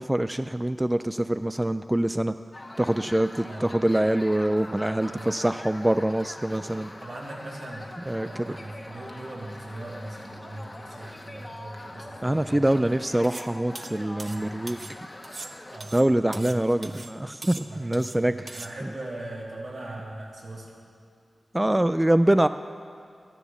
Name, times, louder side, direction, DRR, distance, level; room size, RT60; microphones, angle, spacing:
voice 1, 0.0-2.3 2.8-6.9 8.1-8.5 12.2-14.8 15.9-18.6 21.5-22.5, right 1 dB, 15° right, 11 dB, 0.3 m, -24 dB
sound 1, 2.5-15.8, left 1 dB, 30° left, 1.2 m, -43 dB
voice 2, 3.4-3.7 5.0-5.7 7.0-13.0 14.2-14.7 15.7-17.3 17.7-20.8, right 1 dB, 75° right, -3 dB, 2.8 m, -40 dB
sound 2, 13.2-13.5 13.7-15.0 15.2-16.6 16.8-17.1 17.4-18.2 18.5-18.7, right 2 dB, 45° right, 0.7 m, -41 dB
13.0 x 11.0 x 7.1 m, 2.3 s
wide cardioid pair, 75°, 0 cm